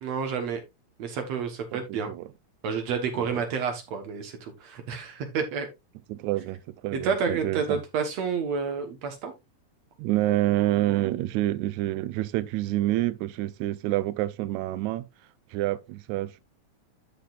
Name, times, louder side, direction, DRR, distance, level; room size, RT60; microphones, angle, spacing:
voice 1, 0.0-0.6 1.0-2.1 2.6-5.7 6.9-9.3, right 6 dB, 65° right, 2.3 m, -29 dB
voice 2, 1.7-2.3 3.2-3.4 6.1-7.8 10.0-15.1 15.5-16.4, right 15 dB, 85° right, 1.9 m, -28 dB
13.0 x 5.1 x 2.4 m
omnidirectional pair, 3.3 m